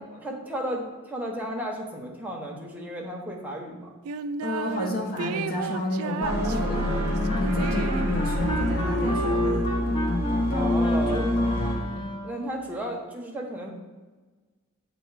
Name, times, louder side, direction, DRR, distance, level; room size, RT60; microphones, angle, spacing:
voice 1, 0.2-0.8 1.1-3.9 10.6-11.3 12.2-13.7, right 1 dB, 5° right, -1 dB, 0.9 m, -33 dB
sound 1, 4.0-4.9 5.2-9.8, right 5 dB, 75° right, 0.3 m, -34 dB
voice 2, 4.4-9.6 11.1-11.2 11.8-12.1, left 1 dB, 45° left, 0 dB, 1.1 m, -31 dB
sound 2, 6.2-11.7, left 1 dB, 70° left, 1.4 m, -25 dB
Wind instrument woodwind instrument, 6.7-12.4, right 1 dB, 25° left, 0.5 m, -34 dB
7.7 x 2.9 x 4.7 m, 1.3 s
head